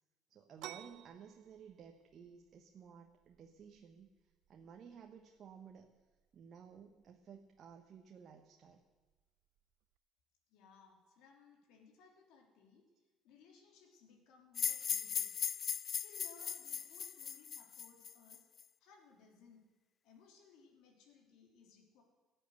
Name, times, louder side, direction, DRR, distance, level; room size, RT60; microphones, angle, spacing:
voice 1, 0.3-4.1 4.5-6.0 6.3-8.8, right 7 dB, 50° right, 4 dB, 1.2 m, -55 dB
sound 1, 0.6-10.0, right 13 dB, 70° right, 0.6 m, -59 dB
voice 2, 10.5-12.8 13.2-15.5 16.0-18.5 18.8-19.6 20.0-22.0, left 5 dB, 70° left, 1 dB, 3.2 m, -63 dB
sound 2, 14.6-18.6, left 8 dB, 50° left, 0.4 m, -38 dB
17.0 x 7.7 x 8.0 m, 1.2 s
hypercardioid pair, 55°, 0 cm